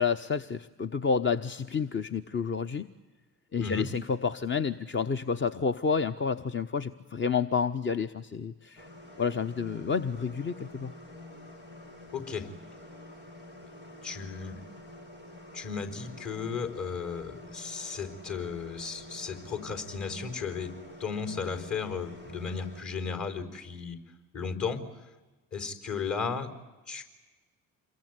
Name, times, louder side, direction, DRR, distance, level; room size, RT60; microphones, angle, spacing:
voice 1, 0.0-2.9 3.5-8.9 9.2-10.9, left 5 dB, 30° left, 10 dB, 0.9 m, -29 dB
sound 1, 8.8-22.8, left 1 dB, 80° left, 3.2 m, -48 dB
voice 2, 12.1-12.5 14.0-14.6 15.5-20.7 21.0-24.0 24.3-24.8 25.5-26.5 26.9-27.0, left 5 dB, 45° left, 7 dB, 4.6 m, -35 dB
27.5 x 22.5 x 9.5 m, 1.2 s
hypercardioid pair, 50°, 39 cm